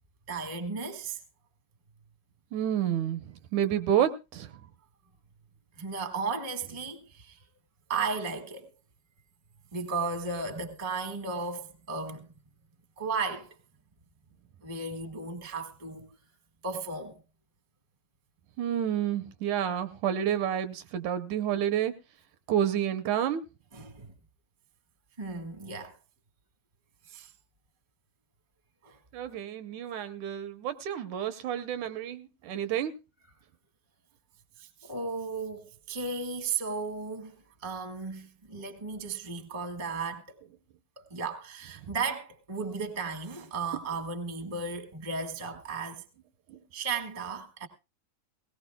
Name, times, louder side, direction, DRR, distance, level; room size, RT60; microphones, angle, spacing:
voice 1, 0.3-1.2 5.7-7.4 7.9-8.7 9.7-12.3 13.0-13.5 14.6-16.1 16.6-17.2 23.7-24.1 25.2-26.0 27.0-27.3 28.8-29.0 34.6-37.4 37.6-40.4 41.0-46.0 46.7-47.7, right 4 dB, 35° right, 0.5 m, -35 dB
voice 2, 2.5-4.5 18.6-21.9 22.5-23.4 29.1-32.9 46.5-46.6, right 10 dB, 75° right, 2.1 m, -29 dB
19.0 x 17.5 x 2.2 m
omnidirectional pair, 3.7 m